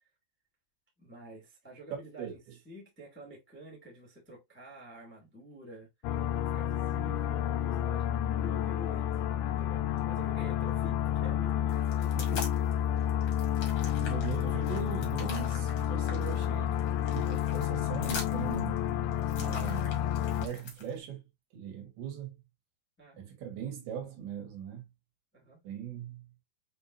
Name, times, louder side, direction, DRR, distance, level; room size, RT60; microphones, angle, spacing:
voice 1, 1.0-2.4 2.6-12.3 13.2-13.4 23.0-23.2 25.3-25.6, equal, 15° left, 0.4 m, -49 dB
voice 2, 1.9-2.4 6.9-7.2 12.1-12.5 14.0-16.8 17.1-18.8 19.4-20.0 20.4-21.2 21.5-22.3 23.2-24.8 25.6-26.2, right 9 dB, 75° right, 3.8 m, -40 dB
sound 1, 6.0-20.5, left 10 dB, 90° left, 3.0 m, -30 dB
sound 2, 11.7-12.7 13.1-20.9, left 5 dB, 70° left, 1.3 m, -44 dB
7.5 x 2.7 x 2.6 m
omnidirectional pair, 5.1 m